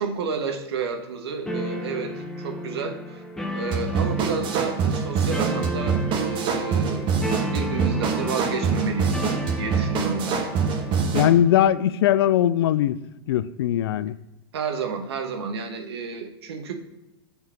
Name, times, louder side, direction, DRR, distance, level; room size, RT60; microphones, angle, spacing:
voice 1, 0.0-3.2 3.5-7.1 7.5-10.4 14.5-16.7, right 5 dB, 75° right, 1.1 m, -31 dB
sound 1, 1.5-11.5, left 1 dB, 5° left, 0.8 m, -34 dB
sound 2, 3.7-11.4, right 5 dB, 40° right, 1.1 m, -25 dB
voice 2, 11.1-13.0 13.3-14.2, left 11 dB, 70° left, 0.4 m, -20 dB
7.2 x 3.9 x 5.8 m
hypercardioid pair, 110°, 14 cm